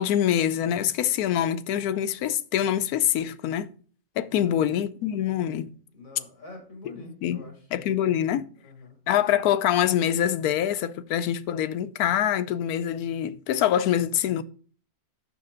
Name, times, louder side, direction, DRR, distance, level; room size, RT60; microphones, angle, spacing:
voice 1, 0.0-3.7 4.2-5.7 7.2-7.4 7.7-8.5 9.1-14.4, left 10 dB, 90° left, 1.1 m, -25 dB
voice 2, 4.4-4.7 5.9-7.7 8.6-9.0, left 3 dB, 65° left, 2.9 m, -45 dB
6.6 x 6.2 x 3.8 m
omnidirectional pair, 1.6 m